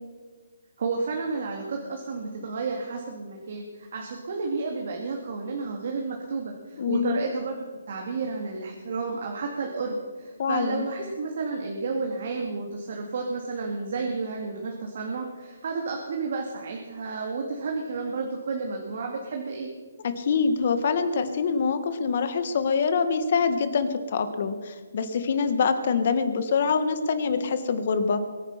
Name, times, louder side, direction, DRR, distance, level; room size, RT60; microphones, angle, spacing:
voice 1, 0.8-7.5 7.9-19.7, right 4 dB, 55° right, 1 dB, 2.3 m, -31 dB
voice 2, 6.8-7.2 10.4-10.9 20.0-28.2, left 5 dB, 50° left, 10 dB, 1.6 m, -25 dB
22.0 x 9.9 x 5.8 m, 1.5 s
hypercardioid pair, 160°, 0 cm